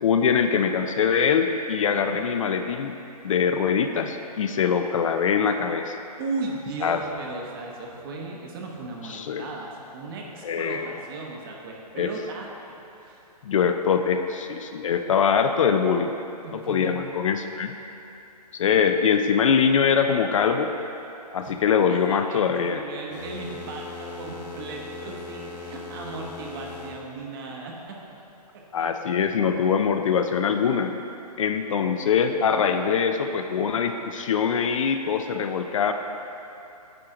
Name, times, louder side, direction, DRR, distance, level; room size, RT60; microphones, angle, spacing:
voice 1, 0.0-3.0 3.2-6.0 6.8-7.0 9.1-9.5 10.4-11.0 12.0-12.1 13.4-16.1 16.5-17.7 18.5-20.7 21.3-22.8 28.7-30.9 31.4-35.9, left 6 dB, 55° left, 7 dB, 0.4 m, -23 dB
voice 2, 6.2-12.5 13.0-13.2 16.4-17.0 21.4-28.0 28.5-28.9, right 3 dB, 35° right, 0 dB, 0.9 m, -36 dB
sound 1, 23.1-27.0, left 3 dB, 85° left, 1.2 m, -38 dB
8.8 x 4.4 x 3.8 m, 2.8 s
hypercardioid pair, 150°, 21 cm